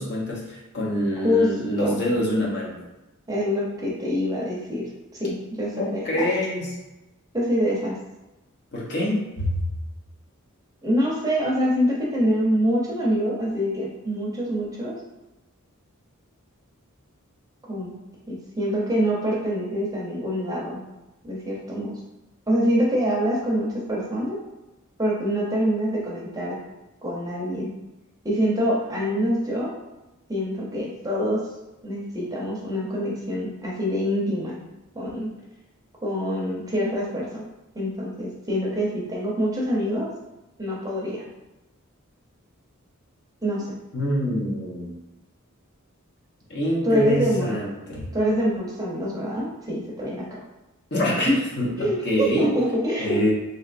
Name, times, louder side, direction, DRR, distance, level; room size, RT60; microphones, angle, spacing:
voice 1, 0.0-2.8 5.8-6.7 8.7-9.6 43.9-44.9 46.5-48.1 50.9-52.5 53.0-53.3, equal, 55° left, -4 dB, 0.8 m, -25 dB
voice 2, 1.2-1.5 1.8-2.1 3.3-4.8 5.2-6.3 7.3-7.9 10.8-15.0 17.7-17.9 18.3-20.8 21.2-21.9 22.5-24.4 25.0-26.6 27.0-27.7 28.2-29.7 30.3-31.4 31.8-34.6 34.9-35.3 36.0-37.4 37.7-40.1 40.6-41.2 43.4-43.8 46.8-47.5 48.1-50.4 51.3-51.4 51.8-53.2, equal, 15° right, -4 dB, 0.6 m, -25 dB
3.1 x 2.8 x 2.5 m, 0.99 s
head